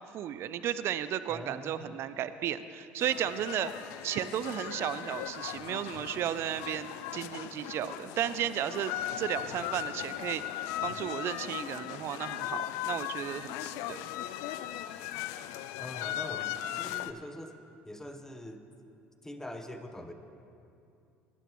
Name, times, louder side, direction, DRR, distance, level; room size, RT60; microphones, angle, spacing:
voice 1, 0.1-3.7 4.0-10.4 10.8-14.1, right 10 dB, 55° right, 14 dB, 0.4 m, -34 dB
voice 2, 1.3-2.0 15.8-17.6 17.9-18.6 19.2-20.1, left 1 dB, 10° left, 7 dB, 1.0 m, -43 dB
sound 1, 3.0-17.1, left 13 dB, 75° left, 0.4 m, -38 dB
18.5 x 9.9 x 3.1 m, 2.6 s
supercardioid pair, 75°, 5 cm